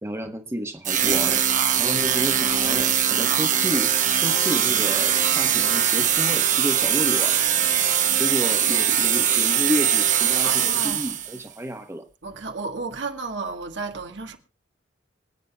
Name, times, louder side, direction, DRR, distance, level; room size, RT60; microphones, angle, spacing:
voice 1, 0.0-1.4 1.8-7.4 7.7-12.0, equal, 15° right, 1.2 m, -31 dB
sound 1, 0.8-11.4, right 9 dB, 45° right, 1.4 m, -21 dB
voice 2, 10.4-11.0 12.2-14.4, right 4 dB, 70° right, 1.7 m, -32 dB
26.0 x 9.4 x 2.3 m
head